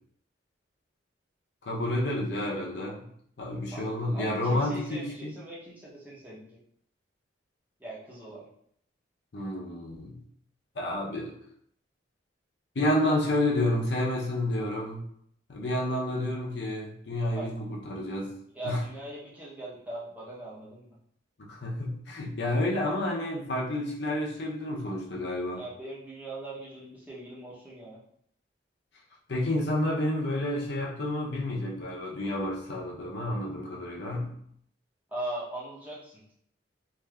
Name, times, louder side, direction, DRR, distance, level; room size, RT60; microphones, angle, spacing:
voice 1, 1.6-3.0 3.4-5.3 9.3-10.2 10.7-11.3 12.8-15.0 15.5-18.3 18.6-18.8 21.5-25.6 29.3-34.3, left 1 dB, 65° left, -2 dB, 0.6 m, -30 dB
voice 2, 4.1-6.6 7.8-8.5 17.3-17.5 18.5-21.0 25.5-28.0 35.1-36.2, right 1 dB, 10° right, -7 dB, 0.6 m, -40 dB
3.3 x 2.6 x 2.3 m, 0.67 s
head